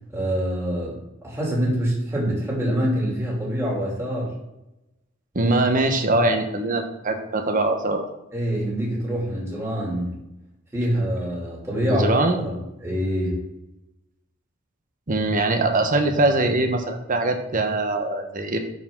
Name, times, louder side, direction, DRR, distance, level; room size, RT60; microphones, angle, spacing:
voice 1, 0.1-0.9 1.2-4.3 8.3-10.1 10.7-12.5 12.8-13.4, equal, 15° right, -5 dB, 2.9 m, -25 dB
voice 2, 5.3-8.0 11.8-12.4 15.1-18.6, right 2 dB, 40° right, 5 dB, 1.1 m, -22 dB
11.5 x 4.9 x 3.8 m, 0.93 s
head